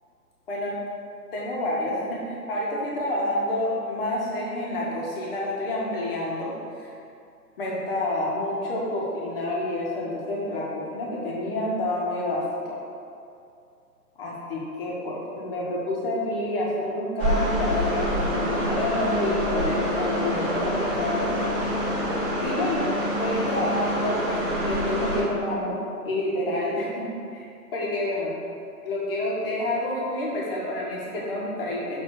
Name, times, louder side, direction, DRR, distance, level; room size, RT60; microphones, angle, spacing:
voice 1, 1.3-6.5 6.8-6.9 7.6-12.8 14.2-21.4 22.4-25.8 26.0-27.0 27.3-27.4 27.7-28.3 28.8-32.0, left 1 dB, 35° left, -5 dB, 1.6 m, -28 dB
sound 1, 17.2-25.2, equal, 15° right, 1.1 m, -26 dB
6.6 x 3.8 x 6.2 m, 2.5 s
hypercardioid pair, 150°, 48 cm